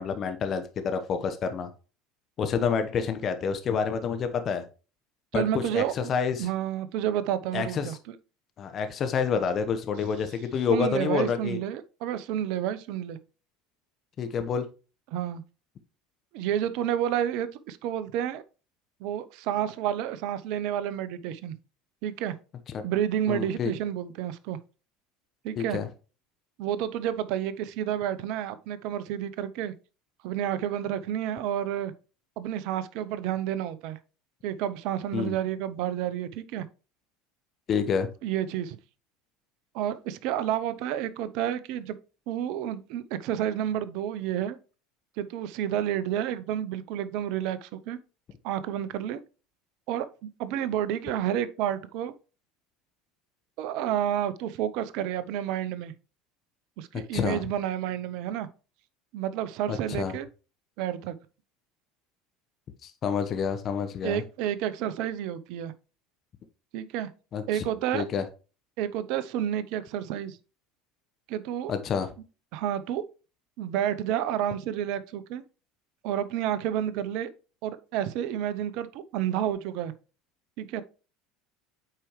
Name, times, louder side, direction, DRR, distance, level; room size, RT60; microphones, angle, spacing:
voice 1, 0.0-1.7 2.4-4.6 5.3-6.5 7.5-8.0 8.6-11.6 14.2-14.7 22.7-22.8 23.3-23.7 25.6-25.9 35.1-35.4 37.7-38.1 56.9-57.4 59.7-60.2 62.8-64.2 67.3-67.7 67.9-68.2 71.7-72.1, left 6 dB, 45° left, 1.0 m, -28 dB
voice 2, 5.3-6.1 6.4-7.9 10.7-13.2 15.1-15.4 16.3-18.4 19.0-21.5 22.0-22.4 22.8-24.6 25.4-25.8 26.6-29.7 30.2-31.9 32.4-34.0 34.4-36.6 38.2-38.8 39.7-42.0 42.3-44.6 45.2-48.0 48.4-49.2 49.9-52.1 53.6-55.9 56.8-58.5 59.1-60.3 60.8-61.1 64.0-65.7 66.7-67.1 67.5-68.1 68.8-70.4 71.3-71.7 72.5-73.0 73.6-75.4 76.0-77.3 77.6-79.9 80.6-80.8, right 10 dB, 65° right, 0.7 m, -30 dB
8.7 x 4.9 x 3.1 m
hypercardioid pair, 75°, 0 cm